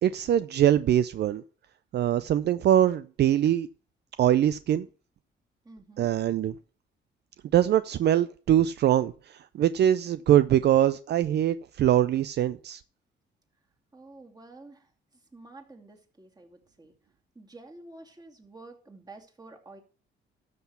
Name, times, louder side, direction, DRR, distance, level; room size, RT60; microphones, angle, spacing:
voice 1, 0.0-1.4 1.9-3.7 4.2-4.9 6.0-6.5 7.5-12.8, right 11 dB, 60° right, 0.5 m, -23 dB
voice 2, 5.6-6.1 13.9-16.9 17.3-19.8, right 2 dB, 20° right, 2.6 m, -49 dB
13.0 x 5.9 x 5.7 m
cardioid pair, 90°, 20 cm